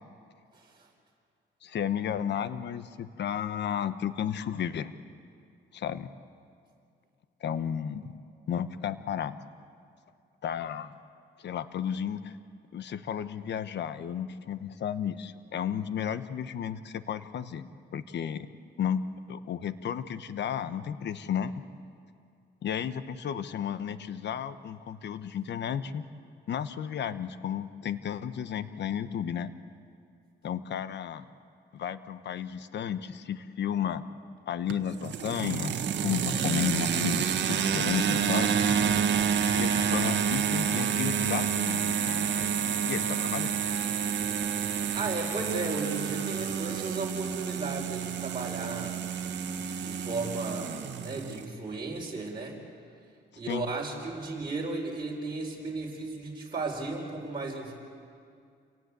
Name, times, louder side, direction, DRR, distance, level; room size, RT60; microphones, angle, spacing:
voice 1, 0.5-0.9 44.9-49.0 49.8-52.6 53.4-57.7, right 3 dB, 25° right, -3 dB, 4.3 m, -35 dB
voice 2, 1.6-4.9 5.7-6.1 7.4-8.1 8.5-9.4 10.4-11.0 11.4-12.3 12.7-18.5 18.8-19.0 19.3-21.5 22.6-26.0 26.5-29.5 30.4-31.3 31.7-34.0 34.5-38.8 39.6-42.6 42.8-43.6 53.5-53.7, left 8 dB, 60° left, 13 dB, 1.1 m, -33 dB
sound 1, 34.7-51.5, right 7 dB, 60° right, 1.5 m, -29 dB
28.0 x 18.0 x 8.2 m, 2.3 s
cardioid pair, 90°, 20 cm